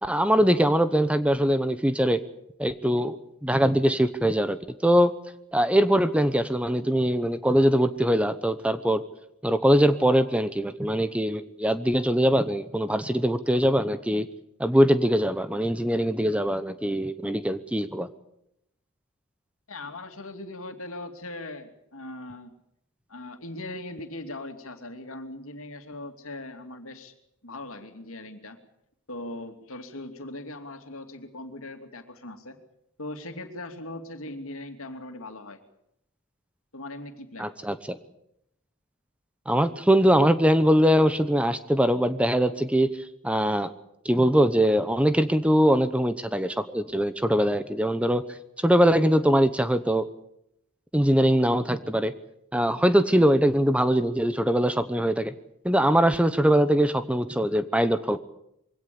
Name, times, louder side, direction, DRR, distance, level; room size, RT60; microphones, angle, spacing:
voice 1, 0.0-2.2 2.6-4.6 4.8-5.1 5.5-9.0 9.4-14.3 14.6-18.1 37.4-38.0 39.5-42.9 43.2-43.7 44.0-48.2 48.6-50.1 50.9-52.1 52.5-55.3 55.6-58.2, equal, 5° right, 12 dB, 0.8 m, -22 dB
voice 2, 19.7-22.5 23.1-27.1 27.4-28.6 29.1-32.6 33.0-35.6 36.7-37.5, left 2 dB, 75° left, 6 dB, 2.8 m, -39 dB
23.5 x 17.0 x 8.6 m, 0.78 s
head